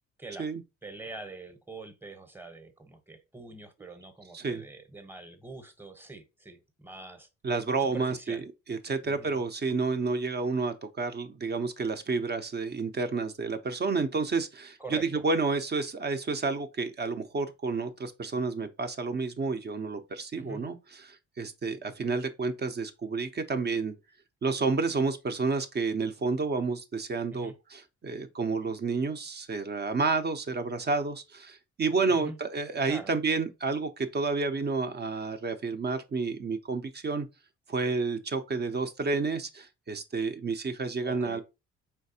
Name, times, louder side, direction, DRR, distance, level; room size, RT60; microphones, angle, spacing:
voice 1, 0.8-7.3 7.8-8.4 9.0-9.4 14.8-15.2 20.4-20.6 27.3-27.5 32.1-32.4 32.9-33.1 41.1-41.4, right 3 dB, 5° right, 0.9 m, -44 dB
voice 2, 4.3-4.6 7.4-23.9 24.4-37.3 37.7-41.4, right 4 dB, 35° right, 0.7 m, -30 dB
4.5 x 3.3 x 2.8 m
cardioid pair, 90°, 30 cm